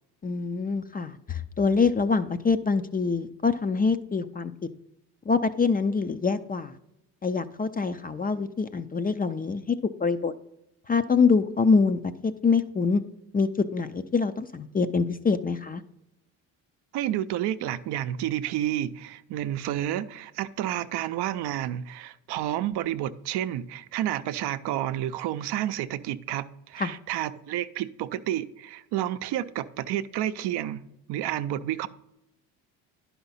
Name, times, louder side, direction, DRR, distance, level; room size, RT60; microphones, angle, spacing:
voice 1, 0.2-4.5 5.3-6.7 7.2-9.8 10.0-10.3 10.9-13.0 13.3-15.8 26.8-26.9, left 4 dB, 20° left, 0.4 m, -25 dB
voice 2, 16.9-30.8 31.1-31.9, right 12 dB, 65° right, 0.6 m, -30 dB
10.5 x 5.8 x 4.1 m
supercardioid pair, 70°, 44 cm